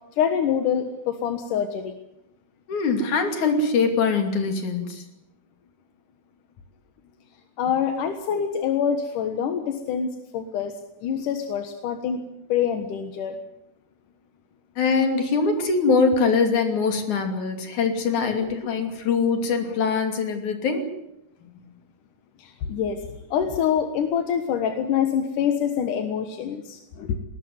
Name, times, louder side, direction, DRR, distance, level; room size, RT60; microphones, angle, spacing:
voice 1, 0.1-2.0 7.6-12.2 12.5-13.4 22.4-23.0 23.3-27.2, left 8 dB, 90° left, 6 dB, 3.0 m, -25 dB
voice 2, 2.7-5.1 14.8-20.9 21.6-21.7, left 4 dB, 70° left, 5 dB, 4.2 m, -23 dB
20.0 x 19.5 x 9.4 m, 0.86 s
omnidirectional pair, 3.5 m